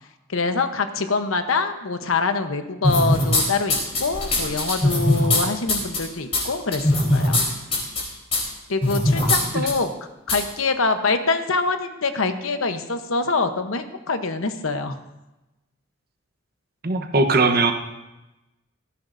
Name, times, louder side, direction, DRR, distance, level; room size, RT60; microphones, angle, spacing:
voice 1, 0.3-7.4 8.7-9.9 10.3-15.0, left 3 dB, 85° left, 8 dB, 1.0 m, -25 dB
sound 1, 2.8-3.4 3.7-5.4 5.7-6.0 6.3-6.4 6.7-7.4 7.7-8.0 8.3-8.4 8.8-9.4 9.7-9.8 10.3-10.4, left 1 dB, 30° left, 4.0 m, -19 dB
voice 2, 16.8-17.7, right 3 dB, 50° right, 6 dB, 1.0 m, -19 dB
18.0 x 14.0 x 2.7 m, 1.0 s
head